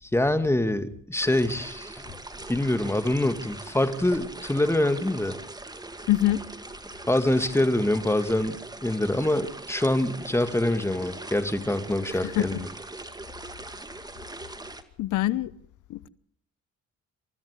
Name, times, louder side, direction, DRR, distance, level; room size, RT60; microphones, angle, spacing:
voice 1, 0.0-2.1 2.5-5.4 7.1-12.7, left 1 dB, 10° left, 2.1 m, -25 dB
sound 1, 1.2-14.8, right 2 dB, 15° right, 2.1 m, -41 dB
voice 2, 6.1-6.4 12.2-12.5 15.0-15.5 15.9-16.1, left 15 dB, 85° left, 1.0 m, -24 dB
28.0 x 13.5 x 8.3 m
cardioid pair, 90°, 30 cm